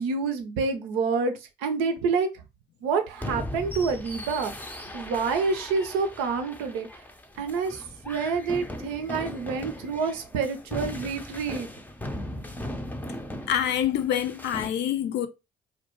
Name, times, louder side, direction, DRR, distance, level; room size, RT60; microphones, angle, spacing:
voice 1, 0.0-1.3 1.6-2.4 2.8-7.0 7.4-11.7, right 5 dB, 80° right, 0.5 m, -28 dB
sound 1, 3.2-14.7, left 1 dB, 10° left, 0.5 m, -38 dB
voice 2, 13.5-15.3, left 10 dB, 65° left, 0.4 m, -26 dB
2.2 x 2.2 x 2.9 m
hypercardioid pair, 45°, 19 cm